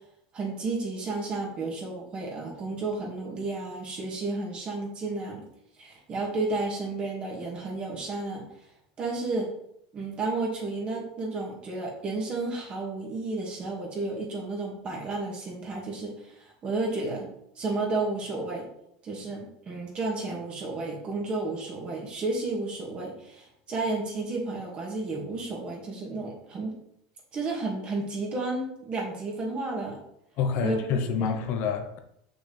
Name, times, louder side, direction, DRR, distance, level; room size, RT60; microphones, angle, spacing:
voice 1, 0.3-5.4 5.8-8.4 9.0-9.5 9.9-17.3 17.6-18.7 19.0-26.7 27.3-30.0 30.6-31.3, right 3 dB, 30° right, 2.0 m, -32 dB
voice 2, 30.4-32.0, left 6 dB, 55° left, 0.8 m, -27 dB
6.6 x 6.2 x 3.4 m
supercardioid pair, 140°, 4 cm